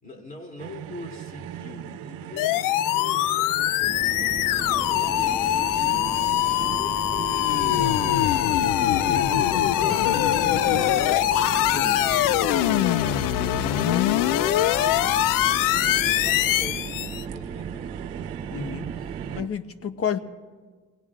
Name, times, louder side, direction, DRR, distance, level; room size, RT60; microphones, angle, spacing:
voice 1, 0.0-4.5 4.9-13.7 14.3-15.3 15.7-17.9, left 3 dB, 25° left, 2 dB, 2.9 m, -43 dB
sound 1, 0.6-19.4, right 10 dB, 80° right, 0.9 m, -39 dB
sound 2, 2.4-17.2, left 14 dB, 75° left, 0.5 m, -23 dB
sound 3, 3.8-19.5, right 6 dB, 20° right, 0.3 m, -37 dB
voice 2, 18.5-18.9 19.4-20.2, left 7 dB, 45° left, 11 dB, 1.1 m, -30 dB
27.5 x 18.5 x 2.5 m, 1.5 s
supercardioid pair, 70°, 33 cm